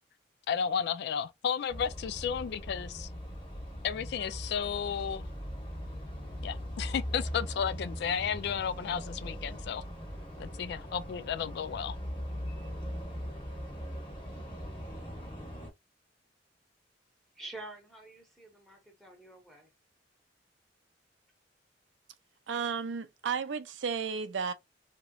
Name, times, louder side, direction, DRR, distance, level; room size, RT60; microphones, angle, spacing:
voice 1, 0.5-3.1 3.8-5.3 6.4-9.8 10.4-12.0, left 7 dB, 65° left, 0.3 m, -33 dB
sound 1, 1.7-15.7, equal, 30° left, 1.1 m, -40 dB
voice 2, 17.4-19.7, right 2 dB, ahead, 0.8 m, -47 dB
voice 3, 22.5-24.5, right 6 dB, 85° right, 0.5 m, -33 dB
3.0 x 2.9 x 2.3 m
head